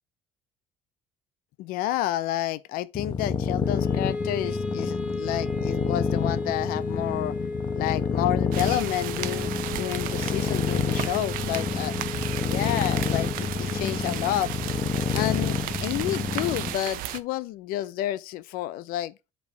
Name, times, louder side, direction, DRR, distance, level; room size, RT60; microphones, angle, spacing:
voice 1, 1.6-7.4 7.7-11.9 12.5-14.5 15.1-19.1, left 13 dB, 75° left, 0.5 m, -30 dB
sound 1, 2.9-16.8, left 6 dB, 30° left, 0.8 m, -29 dB
Wind instrument woodwind instrument, 3.6-15.8, left 2 dB, 10° right, 2.1 m, -36 dB
sound 2, 8.5-17.2, right 13 dB, 70° right, 0.5 m, -34 dB
8.2 x 3.1 x 4.5 m
supercardioid pair, 90°, 15 cm